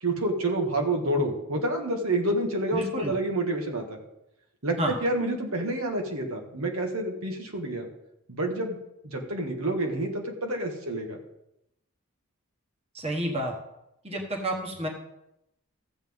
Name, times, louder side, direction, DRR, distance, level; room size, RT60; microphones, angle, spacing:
voice 1, 0.0-4.0 4.6-7.9 8.3-8.8 9.0-11.2, right 1 dB, 80° right, 2 dB, 1.7 m, -28 dB
voice 2, 2.7-3.2 4.8-4.9 12.9-13.5 14.0-14.9, right 1 dB, 30° right, 2 dB, 1.3 m, -30 dB
14.0 x 8.0 x 3.7 m, 0.86 s
head